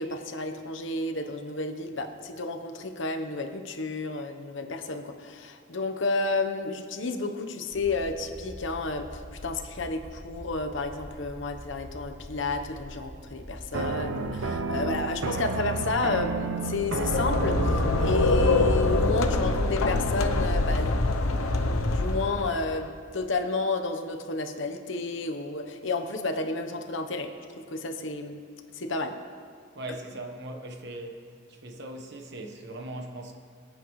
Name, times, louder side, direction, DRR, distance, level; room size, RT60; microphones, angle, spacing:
voice 1, 0.0-21.0 21.8-27.3 27.7-28.4 28.7-29.1, left 3 dB, 60° left, 6 dB, 1.0 m, -31 dB
sound 1, 7.7-16.5, equal, 30° right, 2.0 m, -45 dB
sound 2, 13.7-19.3, right 3 dB, 75° right, 0.7 m, -31 dB
sound 3, 16.6-22.7, left 2 dB, 85° left, 0.8 m, -25 dB
voice 2, 29.7-31.2 31.5-33.3, right 1 dB, 55° right, 4 dB, 1.2 m, -39 dB
23.5 x 8.9 x 3.2 m, 2.1 s
head